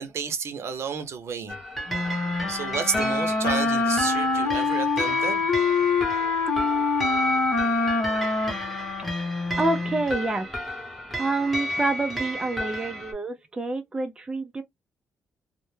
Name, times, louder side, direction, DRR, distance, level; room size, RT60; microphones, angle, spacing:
voice 1, 0.0-1.6 2.5-5.4, right 6 dB, 55° right, 0.6 m, -31 dB
sound 1, 1.5-13.1, equal, ahead, 0.8 m, -32 dB
Wind instrument woodwind instrument, 1.9-10.0, left 4 dB, 60° left, 0.9 m, -25 dB
voice 2, 9.3-10.5 11.1-14.6, right 2 dB, 15° right, 0.4 m, -28 dB
2.1 x 2.1 x 3.1 m
cardioid pair, 115°, 5 cm